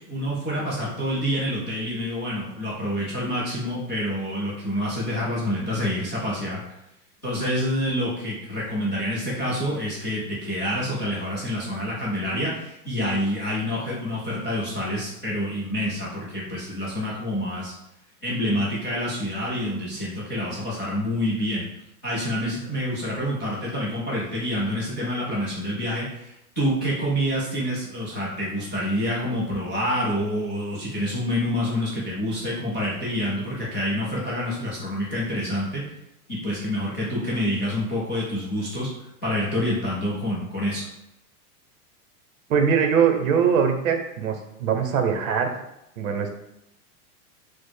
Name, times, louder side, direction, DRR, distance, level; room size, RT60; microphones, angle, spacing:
voice 1, 0.1-6.6 7.2-17.7 18.2-21.6 22.0-35.8 36.3-38.9 39.2-40.9, equal, 15° left, -12 dB, 0.4 m, -27 dB
voice 2, 42.5-45.5 46.0-46.3, right 7 dB, 55° right, 5 dB, 0.8 m, -22 dB
4.8 x 2.1 x 4.7 m, 0.83 s
supercardioid pair, 170°, 47 cm